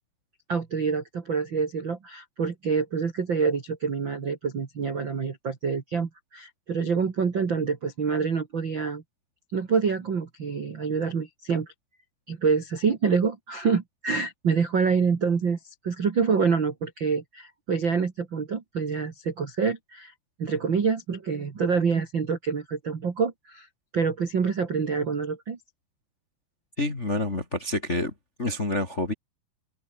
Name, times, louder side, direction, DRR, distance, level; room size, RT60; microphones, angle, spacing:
voice 1, 0.5-9.0 9.5-11.7 12.3-15.6 15.8-20.1 20.4-23.7 23.9-25.6, right 5 dB, 50° right, 1.4 m, -26 dB
voice 2, 26.8-28.1 28.4-29.1, left 2 dB, 25° left, 1.7 m, -28 dB
omnidirectional pair, 5.4 m